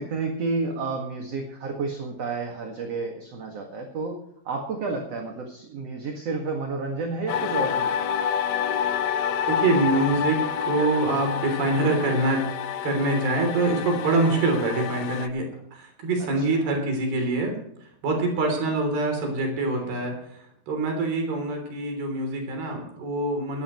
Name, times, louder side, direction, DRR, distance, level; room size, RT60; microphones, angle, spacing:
voice 1, 0.0-4.2 4.4-8.0 16.4-16.6 19.8-19.9, right 3 dB, 50° right, 2 dB, 2.6 m, -31 dB
sound 1, 7.3-15.3, left 8 dB, 80° left, 1.5 m, -28 dB
voice 2, 9.5-12.5 12.8-23.6, right 2 dB, 90° right, 3 dB, 5.4 m, -25 dB
19.5 x 14.5 x 3.1 m, 0.74 s
omnidirectional pair, 4.3 m